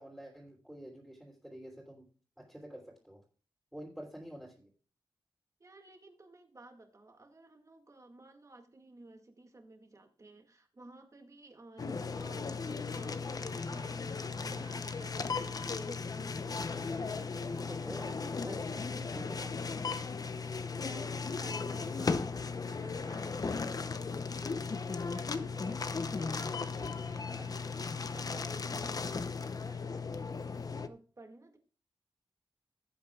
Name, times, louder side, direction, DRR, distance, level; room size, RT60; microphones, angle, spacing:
voice 1, 0.0-2.0 2.4-3.2 3.7-4.7 17.7-18.1 18.4-18.6 19.1-19.9, equal, 5° right, -4 dB, 3.1 m, -48 dB
voice 2, 5.6-19.9 20.5-27.0 27.3-31.6, right 2 dB, 35° right, 4 dB, 2.0 m, -55 dB
sound 1, 11.8-30.9, left 4 dB, 45° left, 0.7 m, -36 dB
sound 2, 12.8-28.7, right 2 dB, 50° right, 3.4 m, -59 dB
17.0 x 8.6 x 2.3 m, 0.38 s
wide cardioid pair, 125°, 9 cm